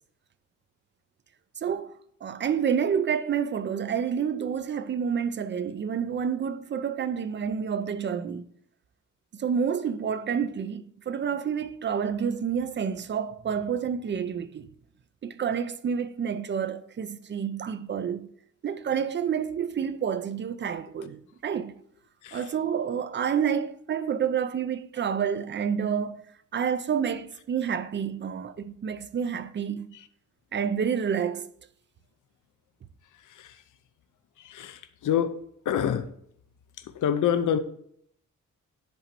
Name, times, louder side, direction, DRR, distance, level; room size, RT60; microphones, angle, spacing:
voice 1, 1.6-8.4 9.3-14.7 15.2-18.3 18.6-21.7 22.3-26.3 26.5-30.0 30.5-31.5, right 7 dB, 35° right, 0.4 m, -29 dB
voice 2, 34.4-36.1 36.9-37.6, left 9 dB, 70° left, 0.6 m, -27 dB
10.5 x 3.9 x 4.4 m
wide cardioid pair, 145°, 32 cm